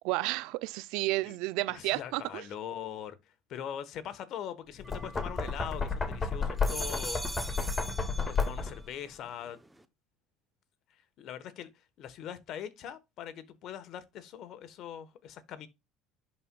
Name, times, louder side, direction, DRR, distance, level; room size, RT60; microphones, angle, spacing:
voice 1, 0.0-2.4, right 19 dB, 75° right, 0.4 m, -31 dB
voice 2, 1.7-7.2 8.3-9.6 11.2-11.7 12.0-15.7, left 9 dB, 60° left, 1.1 m, -42 dB
Knock, 4.7-8.9, left 4 dB, 25° left, 1.6 m, -32 dB
sound 1, 4.8-6.0 6.4-8.9 9.2-9.8, right 1 dB, 10° right, 0.6 m, -42 dB
11.0 x 4.2 x 2.2 m
supercardioid pair, 90°, 0 cm